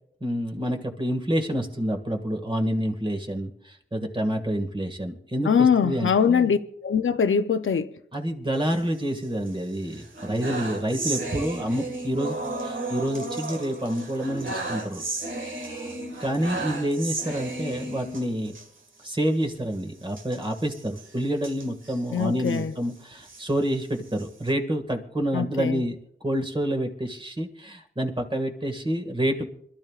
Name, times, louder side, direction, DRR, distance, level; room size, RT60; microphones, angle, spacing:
voice 1, 0.2-6.5 8.1-15.0 15.4-15.9 16.2-18.6 19.0-29.5, equal, 25° right, 1.9 m, -28 dB
voice 2, 5.4-7.9 22.1-22.7 25.3-25.8, left 6 dB, 80° left, 0.7 m, -22 dB
sound 1, 8.5-9.5 9.9-18.7 19.0-19.2 19.4-19.6 20.1-22.6 23.1-24.5, right 2 dB, 75° right, 1.9 m, -34 dB
26.0 x 12.5 x 2.4 m
wide cardioid pair, 70°, 20 cm